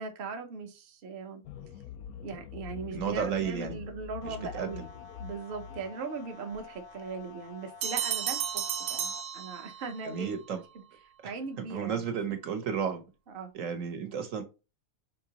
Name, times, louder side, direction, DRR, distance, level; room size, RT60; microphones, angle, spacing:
voice 1, 0.0-1.4 2.2-4.9 5.2-8.6 8.9-10.4 11.2-12.0 13.3-13.5, right 4 dB, 50° right, 0.8 m, -39 dB
sound 1, 1.4-5.9, left 8 dB, 85° left, 1.0 m, -45 dB
voice 2, 2.9-3.8 4.2-4.9 10.0-10.6 11.2-13.0 13.5-14.4, right 7 dB, 70° right, 1.2 m, -33 dB
sound 2, 4.2-9.2, left 5 dB, 55° left, 0.6 m, -50 dB
sound 3, 7.8-10.0, right 9 dB, 90° right, 1.1 m, -33 dB
5.2 x 2.9 x 2.8 m
omnidirectional pair, 1.5 m